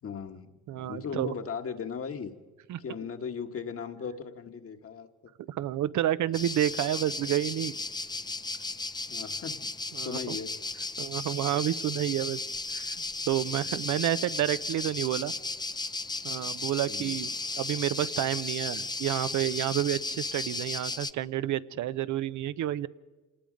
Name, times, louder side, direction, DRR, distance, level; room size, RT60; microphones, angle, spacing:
voice 1, 0.0-2.4 2.8-5.1 9.1-9.7 10.0-10.5 16.9-17.2, left 6 dB, 50° left, 6 dB, 1.6 m, -38 dB
voice 2, 0.7-1.3 2.7-2.8 5.5-7.7 9.9-10.4 11.0-12.4 12.7-13.0 13.3-15.3 16.2-22.9, right 12 dB, 75° right, 14 dB, 0.7 m, -30 dB
sound 1, 6.3-21.1, left 3 dB, 15° left, 0.6 m, -35 dB
26.5 x 19.0 x 5.2 m, 1.2 s
cardioid pair, 90°, 30 cm